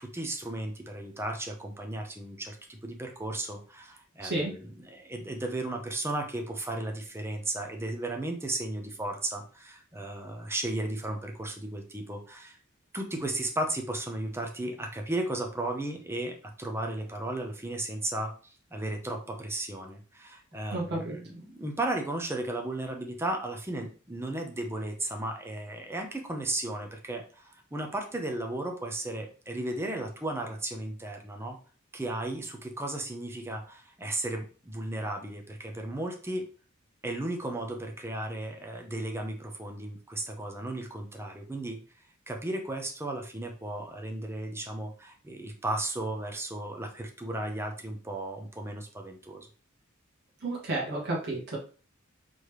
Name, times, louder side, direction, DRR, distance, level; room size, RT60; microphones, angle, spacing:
voice 1, 0.0-12.6 12.9-31.6 31.9-36.5 37.0-41.8 42.3-49.5, right 1 dB, 10° right, 3 dB, 0.7 m, -35 dB
voice 2, 4.2-4.5 20.7-21.2 50.4-51.6, right 2 dB, 55° right, -4 dB, 1.4 m, -31 dB
4.1 x 3.3 x 3.1 m, 0.38 s
head